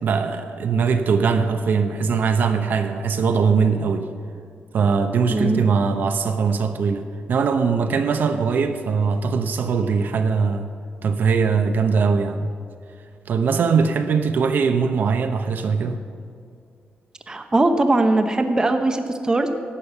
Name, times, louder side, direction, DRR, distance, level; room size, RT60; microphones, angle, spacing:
voice 1, 0.0-4.1 4.7-10.7 11.0-12.5 13.3-16.0, right 5 dB, 65° right, 7 dB, 0.8 m, -21 dB
voice 2, 17.3-19.5, right 2 dB, 20° right, 6 dB, 0.8 m, -20 dB
11.5 x 8.4 x 6.7 m, 2.3 s
cardioid pair, 125°, 4 cm